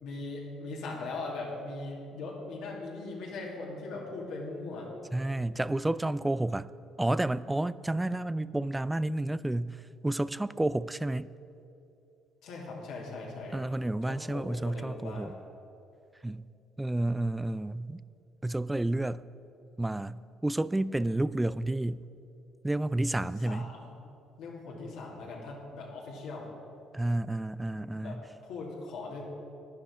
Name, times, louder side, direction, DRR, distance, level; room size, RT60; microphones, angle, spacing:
voice 1, 0.0-4.9 12.4-13.6 14.1-15.3 23.4-24.0 24.4-26.5 28.0-29.3, left 3 dB, 80° left, -3 dB, 2.4 m, -40 dB
voice 2, 5.1-6.7 7.0-11.3 13.5-15.3 16.2-16.4 16.8-18.0 18.4-19.2 19.8-22.0 22.6-23.7 26.9-28.2, right 1 dB, 10° right, 18 dB, 0.3 m, -30 dB
11.5 x 10.5 x 5.0 m, 2.8 s
supercardioid pair, 75°, 0 cm